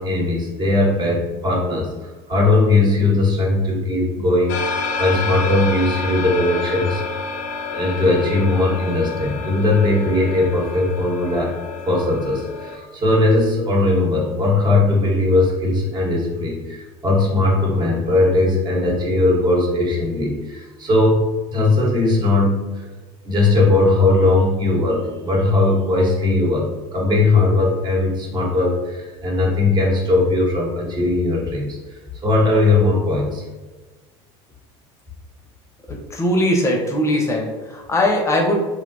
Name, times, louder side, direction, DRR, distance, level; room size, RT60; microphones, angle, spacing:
voice 1, 0.0-1.9 2.3-7.0 7.7-11.5 11.9-22.9 23.2-33.4, left 2 dB, 30° right, -2 dB, 1.1 m, -19 dB
sound 1, 4.5-12.8, left 4 dB, 65° left, 0.5 m, -29 dB
voice 2, 35.9-38.6, left 1 dB, 20° left, 1 dB, 0.7 m, -20 dB
3.3 x 2.7 x 2.6 m, 1.2 s
supercardioid pair, 100°, 14 cm